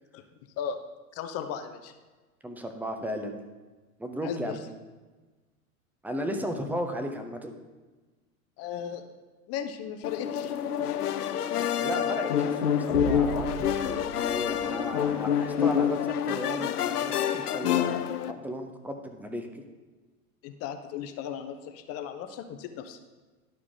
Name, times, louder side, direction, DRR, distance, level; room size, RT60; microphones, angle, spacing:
voice 1, 1.1-1.9 4.2-4.6 8.6-9.0 9.5-10.5 20.4-23.0, left 8 dB, 35° left, 8 dB, 0.7 m, -36 dB
voice 2, 2.4-3.4 4.0-4.6 6.0-7.5 11.8-19.6, equal, 5° right, 4 dB, 0.6 m, -35 dB
sound 1, 10.0-18.3, left 9 dB, 85° left, 0.6 m, -27 dB
sound 2, 12.9-15.5, right 5 dB, 70° right, 0.9 m, -37 dB
11.5 x 4.7 x 3.7 m, 1.3 s
hypercardioid pair, 95°, 45 cm